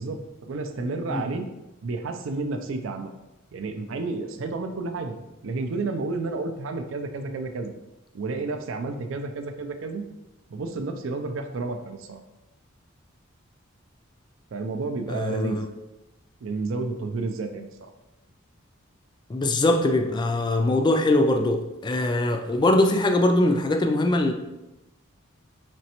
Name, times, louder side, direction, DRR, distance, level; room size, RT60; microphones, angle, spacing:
voice 1, 0.0-1.4 1.8-3.1 3.5-5.1 5.4-7.7 8.1-10.0 10.5-12.2 14.5-15.6 16.4-17.9, right 3 dB, 70° right, 6 dB, 0.4 m, -31 dB
voice 2, 15.1-15.7 19.3-24.3, left 1 dB, 20° left, 5 dB, 0.3 m, -22 dB
5.1 x 3.1 x 2.9 m, 0.96 s
head